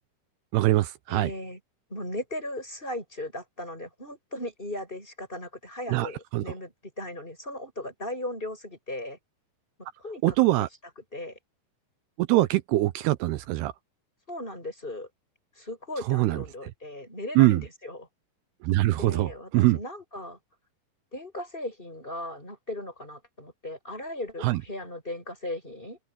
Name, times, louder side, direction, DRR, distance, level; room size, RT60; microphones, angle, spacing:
voice 1, 0.5-1.3 5.9-6.4 10.2-10.7 12.2-13.7 16.1-16.4 17.4-17.6 18.6-19.8 24.4-24.6, right 18 dB, 80° right, 2.7 m, -23 dB
voice 2, 1.1-1.6 1.9-9.2 10.0-10.7 11.1-11.4 14.3-15.1 15.6-18.1 19.0-20.4 21.1-26.0, left 1 dB, 10° left, 7.6 m, -37 dB
open air
omnidirectional pair, 4.7 m